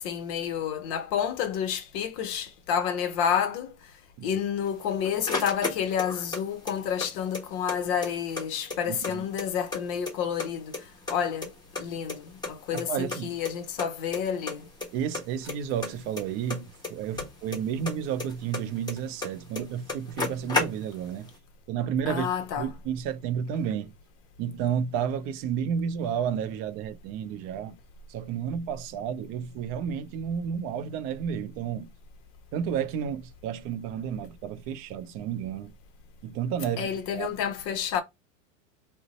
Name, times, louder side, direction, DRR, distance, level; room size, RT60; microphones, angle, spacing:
voice 1, 0.0-3.9 4.2-11.5 11.8-14.7 22.1-22.7 36.8-38.0, left 8 dB, 45° left, 0.7 m, -30 dB
sound 1, 4.7-6.4 6.7-7.8 8.0-8.1 8.4-9.8 10.1-10.8 11.1-12.5 12.8-12.9 13.1-13.2 13.5-13.6 13.8-14.2 14.5-14.9 15.1-17.6 17.9-19.3 19.6-19.7 19.9-21.1, left 3 dB, 10° left, 1.2 m, -32 dB
voice 2, 8.9-9.2 12.7-13.3 14.9-21.3 21.7-22.3 22.6-23.9 24.4-27.8 28.1-31.9 32.5-35.7 36.2-37.3, right 8 dB, 35° right, 0.4 m, -31 dB
2.5 x 2.0 x 3.9 m
hypercardioid pair, 105°, 41 cm